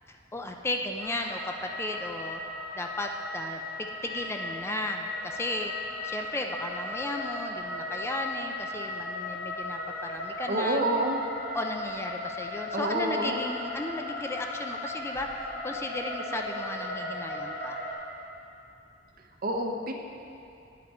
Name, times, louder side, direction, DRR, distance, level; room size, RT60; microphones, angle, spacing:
voice 1, 0.1-2.4 2.8-10.8 11.5-17.8, left 1 dB, 15° left, 3 dB, 0.4 m, -35 dB
sound 1, 1.0-17.9, left 2 dB, 85° left, 2.0 m, -37 dB
voice 2, 10.5-11.2 12.7-13.4 19.4-19.9, right 1 dB, 50° right, 2 dB, 0.8 m, -28 dB
10.0 x 8.0 x 4.3 m, 2.7 s
head